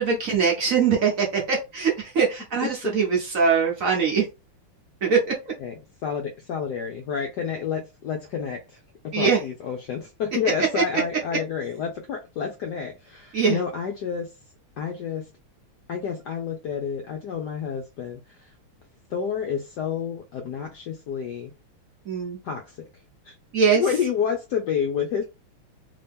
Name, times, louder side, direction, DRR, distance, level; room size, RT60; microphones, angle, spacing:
voice 1, 0.0-4.3 5.0-5.3 9.1-9.4 10.7-10.8 13.3-13.6 22.0-22.4 23.5-23.8, right 5 dB, 55° right, 0.9 m, -22 dB
voice 2, 6.0-14.3 14.8-15.3 15.9-18.5 19.1-21.5 22.4-22.8 23.2-23.3 23.7-25.2, left 7 dB, 70° left, 1.0 m, -29 dB
3.3 x 2.8 x 3.4 m
omnidirectional pair, 2.4 m